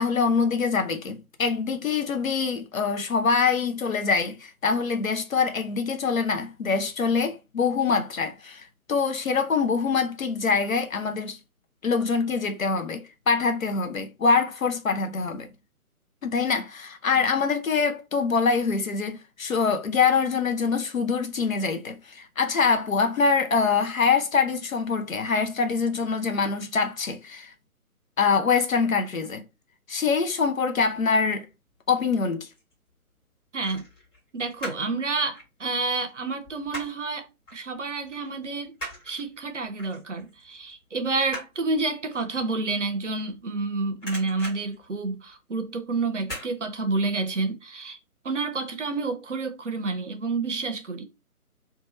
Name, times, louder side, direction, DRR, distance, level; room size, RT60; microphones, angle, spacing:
voice 1, 0.0-11.4 11.8-15.5 16.2-27.5 28.2-29.4 29.9-31.5 31.9-32.5, left 5 dB, 65° left, 0.6 m, -24 dB
sound 1, 32.4-32.7 33.6-35.0 35.2-37.1 37.5-37.7 38.0-43.6 43.9-45.6 46.2-46.5 46.9-47.0, equal, 15° left, 1.3 m, -40 dB
voice 2, 33.5-33.8 34.3-37.3 37.5-38.7 39.1-48.0 48.2-51.1, right 3 dB, 55° right, 0.6 m, -29 dB
2.8 x 2.3 x 2.9 m
figure-of-eight pair, 145°, 45 cm